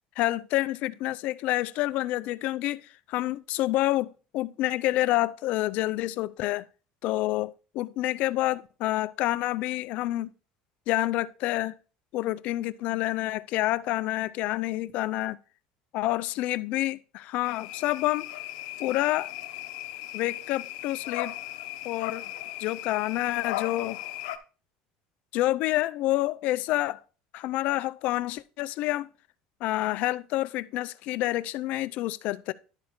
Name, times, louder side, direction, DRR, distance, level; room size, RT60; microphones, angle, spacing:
voice 1, 0.2-6.6 7.0-10.3 10.9-11.7 12.1-15.4 15.9-18.3 18.8-19.3 20.1-21.3 21.8-22.2 22.6-24.0 25.3-27.0 27.3-29.1 29.6-32.5, left 16 dB, 60° left, 0.4 m, -28 dB
sound 1, 17.4-24.4, left 14 dB, 90° left, 0.8 m, -37 dB
11.5 x 4.1 x 4.3 m
cardioid pair, 125°, 3 cm